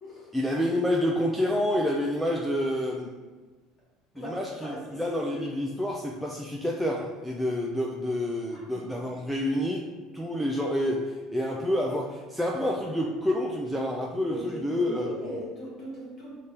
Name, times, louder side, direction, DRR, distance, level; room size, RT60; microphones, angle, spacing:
voice 1, 0.3-3.1 4.2-9.8 10.1-15.1, left 1 dB, ahead, -3 dB, 0.3 m, -28 dB
voice 2, 4.1-5.4 8.5-8.9 14.3-16.4, equal, 30° left, -5 dB, 1.5 m, -39 dB
5.1 x 2.8 x 3.3 m, 1.3 s
cardioid pair, 155°, 0 cm